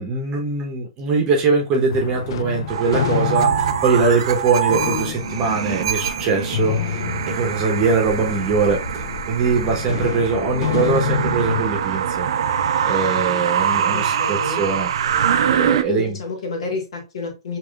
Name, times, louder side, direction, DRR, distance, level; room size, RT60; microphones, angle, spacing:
voice 1, 0.0-7.0 7.3-8.8 9.3-12.3 12.8-14.9 15.5-16.2, right 4 dB, 25° right, 0.8 m, -21 dB
sound 1, 1.9-11.6, left 10 dB, 55° left, 0.3 m, -28 dB
sound 2, 2.7-15.8, right 8 dB, 60° right, 0.4 m, -23 dB
voice 2, 13.9-14.6 15.9-17.6, left 3 dB, 75° left, 1.8 m, -29 dB
4.8 x 2.9 x 2.3 m
hypercardioid pair, 165°, 3 cm